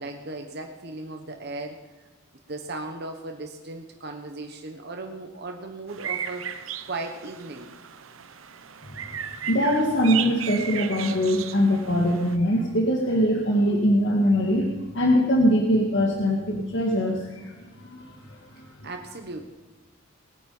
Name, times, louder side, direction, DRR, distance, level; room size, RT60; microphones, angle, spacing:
voice 1, 0.0-1.8 2.5-6.5 6.9-7.7 18.8-19.5, right 2 dB, 55° right, 4 dB, 1.2 m, -36 dB
sound 1, 5.9-12.4, right 9 dB, 85° right, 0.8 m, -35 dB
voice 2, 9.5-18.4, equal, 60° left, 0 dB, 1.9 m, -22 dB
20.0 x 9.4 x 5.5 m, 1.2 s
head